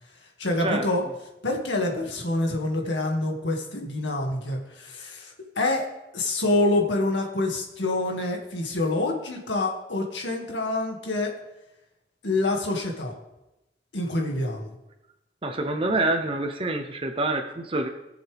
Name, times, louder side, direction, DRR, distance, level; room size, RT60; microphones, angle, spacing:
voice 1, 0.4-1.0 1.4-5.9 6.1-11.3 12.2-13.1 13.9-14.7, left 2 dB, 90° left, 1 dB, 2.1 m, -26 dB
voice 2, 15.4-17.9, right 2 dB, 30° right, 4 dB, 0.8 m, -26 dB
20.0 x 7.1 x 3.5 m, 0.95 s
head